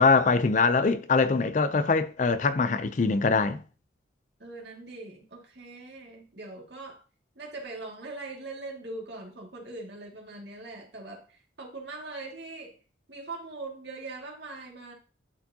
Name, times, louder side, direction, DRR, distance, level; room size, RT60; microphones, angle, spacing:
voice 1, 0.0-3.6, left 4 dB, 40° left, 0.4 m, -23 dB
voice 2, 4.4-7.0 7.4-11.2 11.6-12.8 13.1-14.9, right 2 dB, 60° right, 2.1 m, -41 dB
11.5 x 4.8 x 2.8 m
head